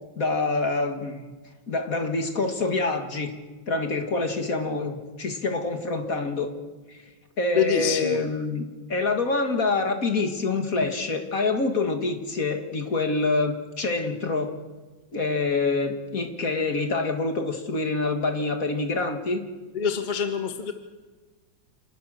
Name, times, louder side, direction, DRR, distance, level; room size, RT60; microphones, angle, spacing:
voice 1, 0.2-1.2 1.7-3.3 3.7-6.5 6.9-7.0 7.4-14.5 15.1-19.4, left 3 dB, 45° left, 5 dB, 2.4 m, -26 dB
voice 2, 7.5-8.3 19.7-20.7, left 7 dB, 25° left, 6 dB, 1.4 m, -26 dB
28.0 x 18.5 x 6.6 m, 1.3 s
omnidirectional pair, 2.1 m